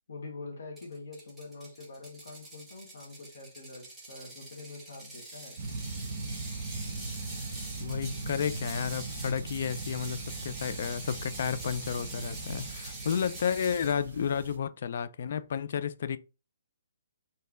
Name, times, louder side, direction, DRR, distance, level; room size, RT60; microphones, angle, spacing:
voice 1, 0.1-5.6, left 3 dB, 70° left, 1.8 m, -45 dB
Ratchet pawl, 0.8-14.0, right 2 dB, 5° right, 1.2 m, -45 dB
sound 1, 5.6-14.6, right 3 dB, 55° right, 1.0 m, -39 dB
voice 2, 7.8-16.2, left 7 dB, 55° left, 0.4 m, -32 dB
4.4 x 3.1 x 3.7 m
hypercardioid pair, 165°, 0 cm